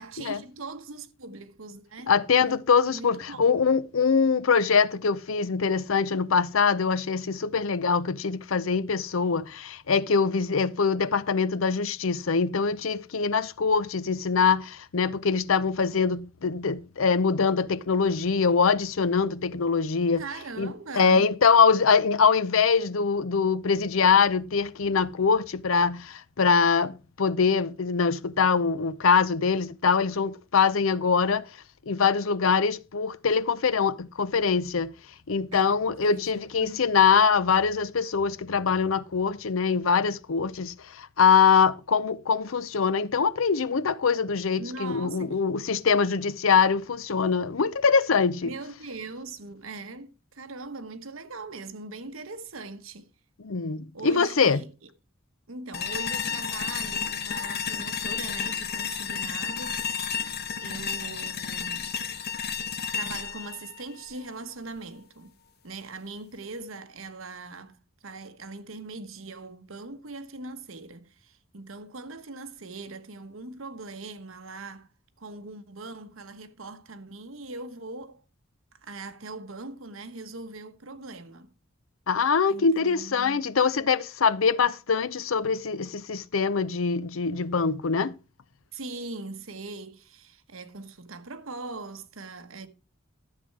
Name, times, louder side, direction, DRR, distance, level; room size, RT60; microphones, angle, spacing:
voice 1, 0.0-2.1 2.4-3.4 20.2-21.3 35.5-36.9 44.6-45.4 48.4-53.1 53.9-54.7 55.5-59.8 60.6-62.0 62.8-65.3 65.6-67.8 68.0-74.9 75.2-78.2 78.8-81.5 82.5-83.4 88.7-92.7, right 3 dB, 80° right, 1.2 m, -41 dB
voice 2, 2.1-20.2 20.6-31.5 31.9-34.9 35.3-48.5 53.4-54.6 82.1-88.2, left 5 dB, 75° left, 0.6 m, -23 dB
sound 1, 55.7-64.8, left 7 dB, 50° left, 1.1 m, -32 dB
12.5 x 7.6 x 4.7 m
head